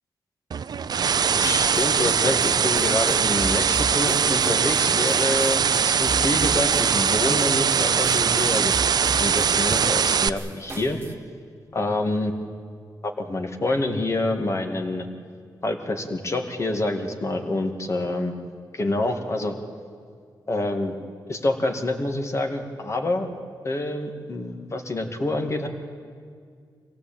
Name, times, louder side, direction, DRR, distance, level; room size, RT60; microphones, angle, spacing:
sound 1, 0.5-10.3, right 7 dB, 60° right, 0.6 m, -21 dB
voice 1, 1.3-8.7 9.2-11.0 11.7-12.3 13.0-15.1 15.6-18.3 18.7-19.6 20.5-20.9 21.3-23.3 23.6-25.7, left 2 dB, 40° left, 5 dB, 2.3 m, -27 dB
sound 2, 1.3-11.1, right 2 dB, 30° right, 1.7 m, -37 dB
24.5 x 17.0 x 9.0 m, 2.1 s
wide cardioid pair, 100°, 8 cm